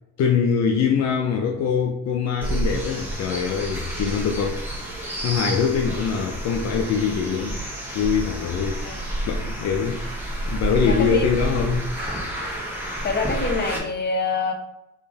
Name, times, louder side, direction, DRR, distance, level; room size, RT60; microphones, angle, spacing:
voice 1, 0.2-4.6 5.2-7.6 7.9-8.8 9.3-11.9, left 6 dB, 55° left, 3 dB, 0.6 m, -23 dB
sound 1, 2.4-13.8, right 1 dB, 5° right, 1.5 m, -29 dB
voice 2, 10.8-11.6 13.0-14.5, left 4 dB, 35° left, 3 dB, 1.0 m, -26 dB
3.7 x 3.5 x 3.9 m, 0.90 s
cardioid pair, 105°, 31 cm